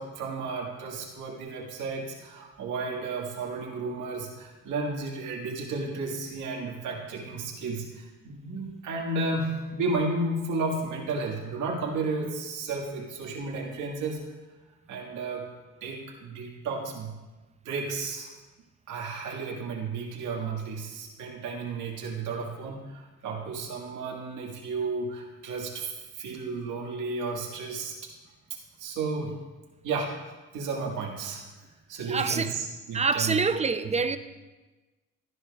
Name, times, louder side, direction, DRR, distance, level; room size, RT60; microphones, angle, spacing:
voice 1, 0.0-14.2 14.9-15.5 15.8-17.1 17.7-18.3 18.9-27.9 28.8-29.3 29.8-30.1 30.5-31.5 31.9-33.4 33.8-34.0, right 3 dB, 85° right, -2 dB, 1.8 m, -33 dB
voice 2, 32.1-32.5 32.9-34.2, right 4 dB, 20° right, 11 dB, 0.5 m, -26 dB
13.0 x 11.0 x 2.4 m, 1.2 s
cardioid pair, 90°, 30 cm